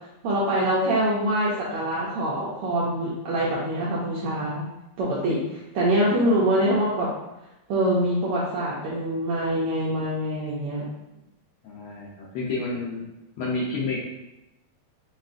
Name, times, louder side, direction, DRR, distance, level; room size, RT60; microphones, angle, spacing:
voice 1, 0.2-4.6 5.0-7.1 7.7-10.8, right 1 dB, 80° right, -6 dB, 1.2 m, -24 dB
voice 2, 11.6-13.0 13.4-14.0, left 3 dB, 85° left, -5 dB, 1.2 m, -30 dB
6.1 x 2.4 x 2.5 m, 0.92 s
omnidirectional pair, 3.3 m